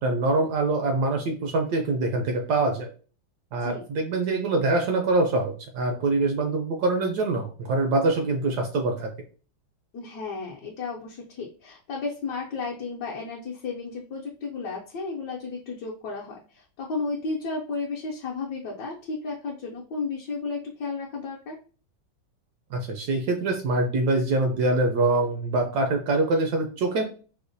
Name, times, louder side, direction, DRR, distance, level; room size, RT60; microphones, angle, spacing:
voice 1, 0.0-2.9 3.5-9.1 22.7-27.0, right 2 dB, 70° right, 3 dB, 0.9 m, -24 dB
voice 2, 9.9-21.6, left 4 dB, 70° left, -2 dB, 1.1 m, -33 dB
4.8 x 2.1 x 2.6 m, 0.38 s
omnidirectional pair, 2.2 m